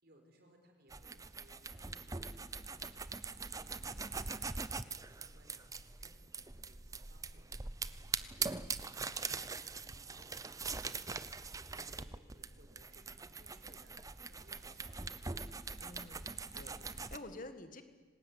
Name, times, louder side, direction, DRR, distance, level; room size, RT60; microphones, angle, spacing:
voice 1, 0.0-11.1 11.7-15.2, right 1 dB, 50° right, 4 dB, 5.1 m, -66 dB
sound 1, 0.9-17.2, right 4 dB, 15° right, 0.7 m, -42 dB
voice 2, 15.8-17.8, left 2 dB, 40° left, 9 dB, 1.8 m, -50 dB
26.5 x 19.5 x 9.7 m, 1.5 s
head